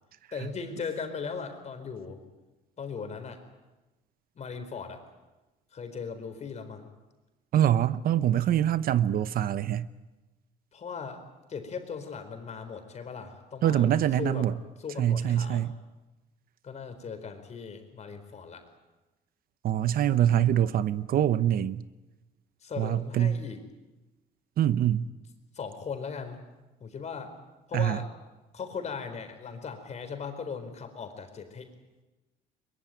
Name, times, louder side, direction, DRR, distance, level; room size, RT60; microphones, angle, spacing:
voice 1, 0.3-2.2 2.8-3.4 4.4-5.0 5.7-6.9 10.7-11.2 11.5-13.9 14.2-14.5 14.8-15.7 16.6-18.6 22.6-23.6 25.5-26.4 26.8-27.3 27.7-28.1 28.5-31.7, left 5 dB, 40° left, 7 dB, 4.3 m, -38 dB
voice 2, 7.5-9.9 13.6-14.5 15.0-15.7 19.6-21.8 22.8-23.4 24.6-25.1 27.7-28.0, right 11 dB, 60° right, 14 dB, 0.9 m, -24 dB
22.0 x 22.0 x 9.2 m, 1.1 s
cardioid pair, 110°, 17 cm